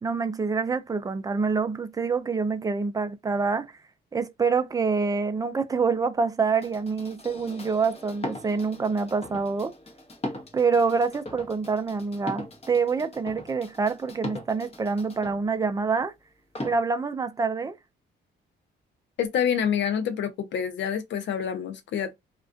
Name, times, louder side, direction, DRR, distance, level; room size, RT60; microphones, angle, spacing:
voice 1, 0.0-3.8 4.1-9.7 10.5-16.1 16.6-17.8, right 4 dB, 20° right, 0.4 m, -26 dB
sound 1, 6.6-15.4 16.6-16.8, left 1 dB, 30° left, 0.9 m, -39 dB
voice 2, 19.2-22.1, left 8 dB, 65° left, 0.6 m, -27 dB
2.3 x 2.2 x 2.4 m
cardioid pair, 90°, 20 cm